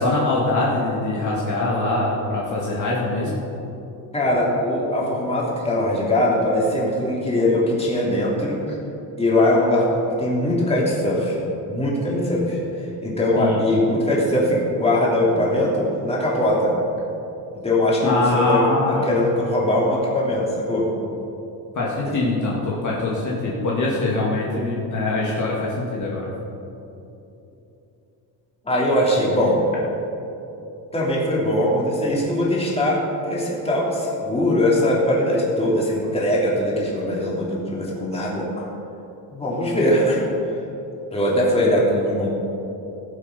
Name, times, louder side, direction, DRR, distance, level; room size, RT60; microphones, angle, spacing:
voice 1, 0.0-3.4 13.4-13.6 18.0-19.1 21.7-26.3, left 2 dB, 45° left, -4 dB, 2.1 m, -23 dB
voice 2, 4.1-8.6 9.2-16.7 17.6-18.7 19.0-20.9 22.0-22.1 28.6-29.6 30.9-38.7 39.3-40.3 41.1-42.3, left 1 dB, 15° left, -5 dB, 3.0 m, -21 dB
17.5 x 7.8 x 5.3 m, 2.9 s
cardioid pair, 135°, 43 cm